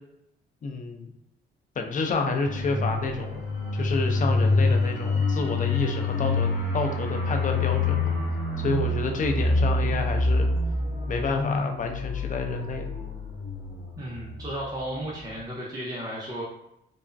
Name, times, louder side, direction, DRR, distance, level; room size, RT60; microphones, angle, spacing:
voice 1, 0.6-1.1 1.8-3.5 3.7-6.5 6.7-8.1 8.6-10.5 11.1-12.9, left 4 dB, 40° left, 4 dB, 0.5 m, -29 dB
sound 1, 2.4-14.8 15.1-15.3, left 2 dB, 80° left, 0.8 m, -26 dB
voice 2, 14.0-16.4, right 1 dB, 20° right, -5 dB, 0.6 m, -34 dB
3.3 x 2.1 x 2.5 m, 0.80 s
cardioid pair, 90°, 20 cm